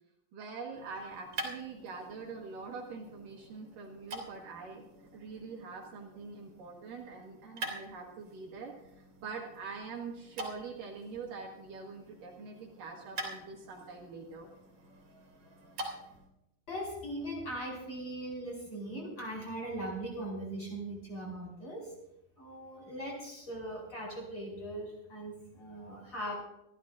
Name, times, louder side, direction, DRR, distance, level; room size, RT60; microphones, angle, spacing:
voice 1, 0.3-4.8 5.1-14.5, right 4 dB, 65° right, 0 dB, 2.8 m, -44 dB
sound 1, 0.7-16.3, right 2 dB, 45° right, 3.6 m, -46 dB
voice 2, 16.7-21.9 22.4-26.4, right 1 dB, 30° left, -3 dB, 5.7 m, -40 dB
24.5 x 13.5 x 2.6 m, 0.86 s
omnidirectional pair, 4.6 m